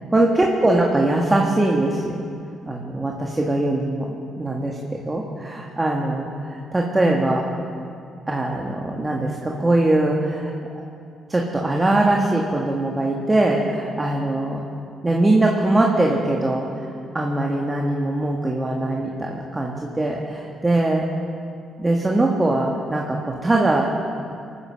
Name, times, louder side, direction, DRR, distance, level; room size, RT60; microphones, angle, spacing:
voice 1, 0.1-2.2 2.7-4.7 5.0-7.4 8.3-10.5 11.3-14.6 15.0-21.1 21.8-24.0, right 2 dB, 20° right, -1 dB, 1.7 m, -21 dB
22.0 x 10.0 x 6.4 m, 2.4 s
cardioid pair, 90°, 0 cm